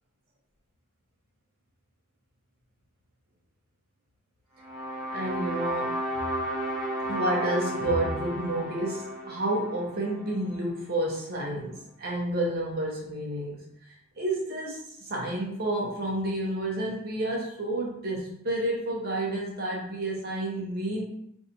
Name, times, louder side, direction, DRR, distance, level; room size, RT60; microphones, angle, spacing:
sound 1, 4.6-10.8, right 1 dB, ahead, 1.0 m, -33 dB
voice 1, 5.1-6.0 7.1-21.0, right 1 dB, 45° right, -3 dB, 0.8 m, -30 dB
4.6 x 2.6 x 2.7 m, 0.71 s
head